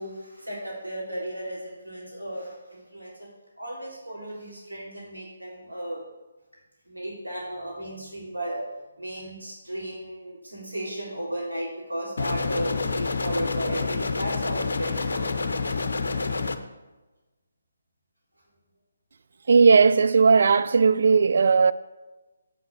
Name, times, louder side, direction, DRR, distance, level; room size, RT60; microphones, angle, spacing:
voice 1, 0.0-3.3 3.6-6.0 6.9-8.6 9.0-15.3, right 1 dB, 85° right, 3.6 m, -35 dB
sound 1, 12.2-16.6, left 4 dB, 55° left, 0.8 m, -28 dB
voice 2, 19.5-21.7, right 5 dB, 50° right, 0.4 m, -17 dB
8.4 x 6.0 x 7.0 m
figure-of-eight pair, 145°, 0 cm